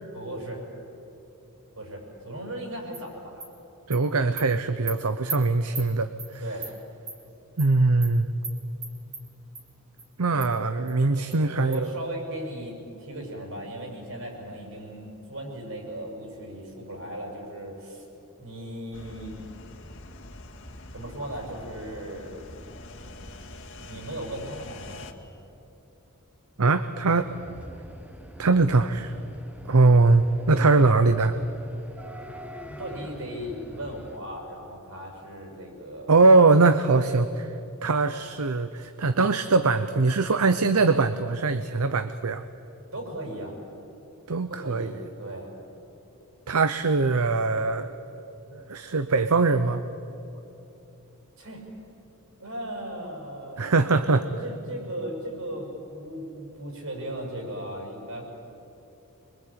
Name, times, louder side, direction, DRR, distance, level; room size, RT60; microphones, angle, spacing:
voice 1, 0.1-0.6 1.8-3.4 6.4-6.7 10.3-10.5 11.1-18.0 18.4-19.4 20.9-22.4 23.9-25.1 30.7-30.8 32.7-36.2 42.9-43.6 44.5-45.5 51.4-51.6 52.4-53.8 54.1-58.2, right 1 dB, 65° right, 1 dB, 6.9 m, -37 dB
Animal, 2.9-3.0 3.4-3.5 3.9-4.0 4.4-4.5 4.9-5.0 5.3-5.4 5.7-5.9 6.2-6.3 6.6-6.7 7.1-7.2 7.6-7.7 8.0-8.1 8.4-8.5 8.8-9.2 9.5-9.6 10.0-10.1 10.4-10.5 10.9-11.0 11.3-11.4 11.7-11.8, right 4 dB, 30° right, 3.4 m, -35 dB
voice 2, 3.9-6.4 7.6-8.3 10.2-11.9 26.6-27.3 28.4-29.2 29.7-31.3 36.1-37.5 37.8-42.4 44.3-45.0 46.5-47.9 48.5-49.8 53.6-54.2, right 3 dB, 80° right, 11 dB, 0.8 m, -21 dB
sound 1, 18.9-25.1, left 2 dB, 55° left, 2.0 m, -44 dB
sound 2, 27.1-34.2, equal, 5° right, 1.4 m, -44 dB
25.5 x 23.5 x 8.9 m, 2.9 s
head